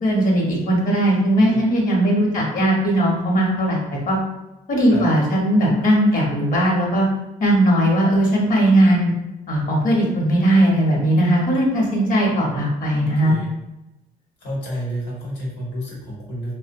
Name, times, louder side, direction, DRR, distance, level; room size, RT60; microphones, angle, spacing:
voice 1, 0.0-4.2 4.7-7.0 7.4-9.1 9.5-13.3, right 1 dB, 55° left, -2 dB, 0.9 m, -18 dB
voice 2, 2.3-2.6 4.9-5.1 13.2-13.5 14.4-16.5, equal, 85° left, -4 dB, 1.0 m, -30 dB
2.6 x 2.1 x 2.6 m, 0.95 s
cardioid pair, 110°, 17 cm